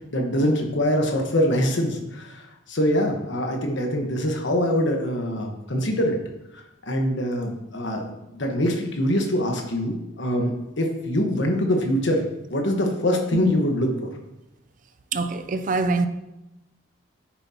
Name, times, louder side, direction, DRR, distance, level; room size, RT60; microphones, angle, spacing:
voice 1, 0.1-6.2 6.8-13.9, equal, 65° left, 1.3 m, -24 dB
voice 2, 15.1-16.1, right 3 dB, 40° right, 0.4 m, -24 dB
9.1 x 7.3 x 2.9 m
head